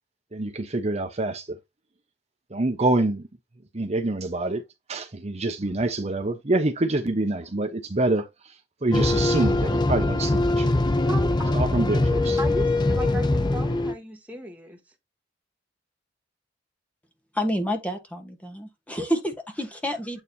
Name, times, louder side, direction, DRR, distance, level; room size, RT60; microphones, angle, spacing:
voice 1, 0.3-1.6 2.5-3.2 3.7-4.6 4.9-10.7 11.5-12.4, right 2 dB, 35° right, 0.9 m, -26 dB
sound 1, 8.9-13.9, left 2 dB, 25° left, 0.7 m, -22 dB
voice 2, 11.1-11.6 12.4-14.8 19.0-19.1, right 1 dB, 10° right, 1.9 m, -36 dB
voice 3, 17.3-20.2, equal, 10° left, 1.3 m, -29 dB
9.1 x 3.1 x 4.1 m
head